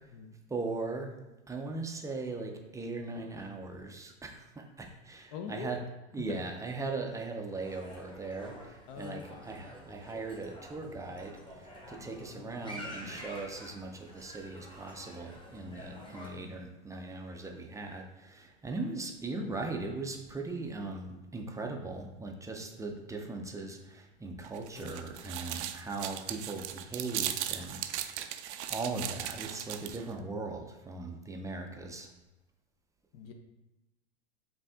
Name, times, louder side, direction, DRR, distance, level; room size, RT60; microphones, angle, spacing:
voice 1, 0.5-1.1 1.5-5.8 6.1-28.4 28.7-32.1, right 3 dB, 10° right, 2 dB, 0.4 m, -39 dB
voice 2, 5.3-5.7 6.2-6.4 8.9-9.5 10.1-10.2 16.3-16.5 24.7-25.0 33.1-33.3, left 6 dB, 55° left, 5 dB, 0.6 m, -44 dB
sound 1, 7.6-16.3, equal, 15° left, 0.9 m, -48 dB
sound 2, 24.4-30.1, right 11 dB, 70° right, 0.5 m, -38 dB
5.2 x 2.6 x 3.5 m, 1.0 s
hypercardioid pair, 105°, 35 cm